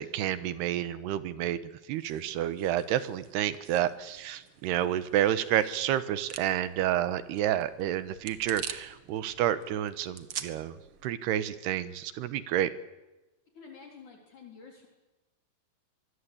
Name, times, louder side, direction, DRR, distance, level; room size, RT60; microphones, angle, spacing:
voice 1, 0.0-1.6 1.9-10.8 11.0-12.7, right 11 dB, 90° right, 13 dB, 3.3 m, -29 dB
sound 1, 1.9-11.1, right 8 dB, 75° right, 1.2 m, -46 dB
voice 2, 13.5-14.9, left 5 dB, 50° left, 1 dB, 5.1 m, -49 dB
25.5 x 21.5 x 8.7 m, 1.1 s
omnidirectional pair, 4.6 m